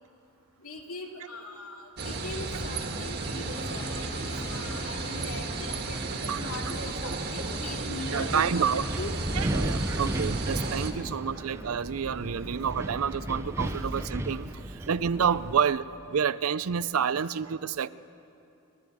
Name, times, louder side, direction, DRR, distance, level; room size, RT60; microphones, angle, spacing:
voice 1, 0.6-3.9 4.4-9.1 9.7-10.0 10.3-10.4 10.7-11.2 12.2-12.3 15.2-15.3, left 2 dB, 80° left, 1 dB, 2.5 m, -41 dB
sound 1, 2.0-10.9, right 3 dB, 50° right, 1.6 m, -33 dB
sound 2, 3.3-8.1, left 1 dB, 25° left, 1.3 m, -44 dB
voice 2, 7.8-8.8 9.4-17.9, right 7 dB, 75° right, 17 dB, 0.5 m, -29 dB
Wind, 8.2-15.6, right 1 dB, 15° right, 0.7 m, -34 dB
29.5 x 11.0 x 7.9 m, 2.7 s
head